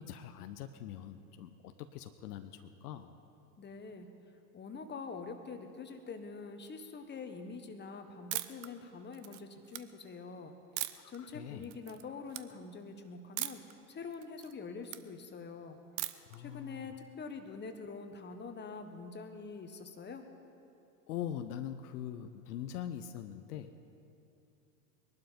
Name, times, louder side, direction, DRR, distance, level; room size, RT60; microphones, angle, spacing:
voice 1, 0.0-3.1 11.2-11.7 16.3-16.9 21.1-23.9, left 10 dB, 70° left, 9 dB, 0.9 m, -43 dB
voice 2, 3.6-4.1 4.5-10.5 11.1-15.8 16.4-20.3, left 4 dB, 20° left, 6 dB, 1.4 m, -45 dB
sound 1, 8.3-8.7 9.1-9.8 10.8-11.2 11.6-12.0 12.3-12.4 13.4-13.7 14.1-15.0 16.0-16.4, right 16 dB, 45° right, 0.8 m, -38 dB
21.0 x 12.0 x 5.2 m, 2.7 s
hypercardioid pair, 90°, 48 cm